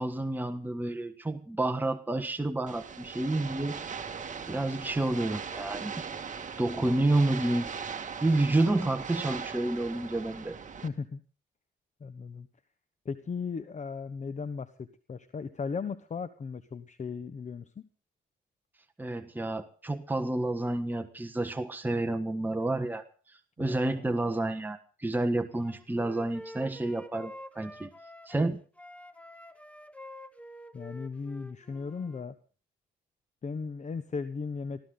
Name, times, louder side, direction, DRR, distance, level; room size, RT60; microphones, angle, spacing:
voice 1, 0.0-3.8 4.5-5.9 6.6-7.7 8.2-10.6 19.0-23.0 23.6-27.9 28.3-28.6, right 2 dB, 10° right, 8 dB, 1.4 m, -29 dB
sound 1, 2.7-10.9, right 6 dB, 40° right, 2.1 m, -39 dB
voice 2, 10.8-11.2 12.0-12.5 13.0-17.9 23.6-24.1 30.7-32.3 33.4-34.9, left 5 dB, 35° left, 12 dB, 1.2 m, -37 dB
Wind instrument woodwind instrument, 25.6-28.5 28.8-32.3, left 1 dB, 5° left, 1.3 m, -48 dB
23.5 x 15.5 x 3.9 m, 0.38 s
cardioid pair, 90°, 20 cm